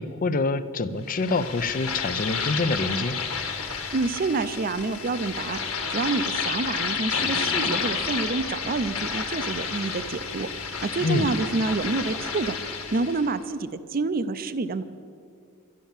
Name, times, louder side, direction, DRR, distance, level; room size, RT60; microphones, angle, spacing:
voice 1, 0.0-3.2 11.0-11.3, left 3 dB, 40° left, 13 dB, 0.6 m, -26 dB
sound 1, 1.1-13.3, left 5 dB, 85° left, 1.5 m, -30 dB
voice 2, 3.9-5.6 5.9-12.6 12.9-14.8, right 3 dB, 45° right, 12 dB, 0.5 m, -28 dB
12.0 x 11.5 x 7.2 m, 2.3 s
head